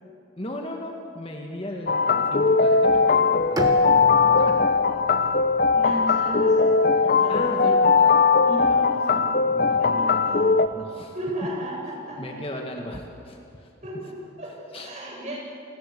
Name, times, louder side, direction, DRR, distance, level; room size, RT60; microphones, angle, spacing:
voice 1, 0.4-4.6 7.3-8.2 8.7-11.1 12.2-13.7 14.0-14.1 14.7-14.9, left 1 dB, 30° left, 1 dB, 1.9 m, -37 dB
sound 1, 1.9-10.7, left 4 dB, 45° left, 0.7 m, -19 dB
Bowed string instrument, 3.6-7.5, right 1 dB, 20° right, 1.7 m, -37 dB
voice 2, 5.7-7.9 8.4-9.3 9.8-10.0 11.1-12.4 13.8-15.4, right 1 dB, 35° right, -3 dB, 7.5 m, -35 dB
28.5 x 21.0 x 7.0 m, 2.6 s
head